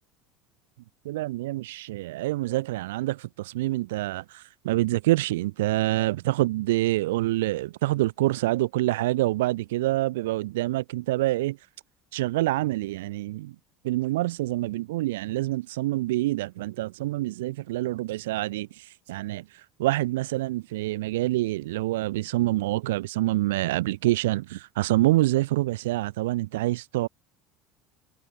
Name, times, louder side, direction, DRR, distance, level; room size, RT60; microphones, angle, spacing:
voice 1, 1.0-11.6 12.1-13.5 13.8-18.7 19.1-19.4 19.8-27.1, right 17 dB, 80° right, 3.2 m, -26 dB
hypercardioid pair, 85°, 0 cm